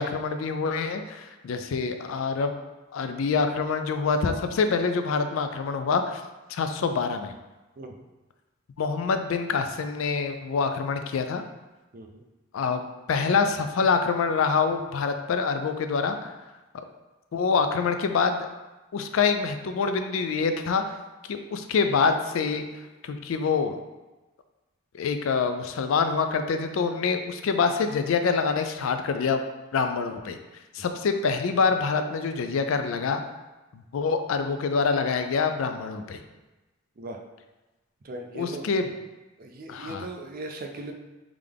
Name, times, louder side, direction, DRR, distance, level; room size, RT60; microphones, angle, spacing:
voice 1, 0.0-2.5 2.9-6.2 6.5-7.3 8.8-11.4 12.5-12.8 13.1-16.3 17.3-18.5 18.9-21.0 21.3-22.6 23.0-23.8 24.9-29.4 29.7-30.4 30.7-33.2 33.7-36.2 38.3-38.9 39.7-40.0, left 5 dB, 80° left, 7 dB, 0.4 m, -26 dB
voice 2, 7.8-8.1 11.9-12.2 37.0-37.2 38.0-38.7 39.4-40.9, right 2 dB, 45° right, 4 dB, 0.4 m, -38 dB
3.6 x 3.3 x 3.4 m, 1.1 s
head